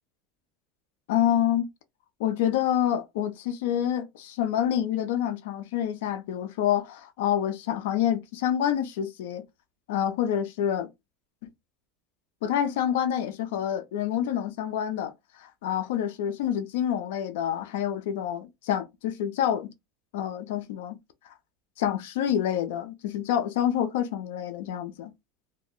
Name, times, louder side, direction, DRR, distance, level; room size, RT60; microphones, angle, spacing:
voice 1, 1.1-1.7 2.2-9.4 9.9-10.9 11.4-11.5 12.4-15.1 15.4-19.7 20.1-21.0 21.8-25.1, left 10 dB, 85° left, 0.6 m, -27 dB
2.9 x 2.1 x 3.7 m
supercardioid pair, 145°, 0 cm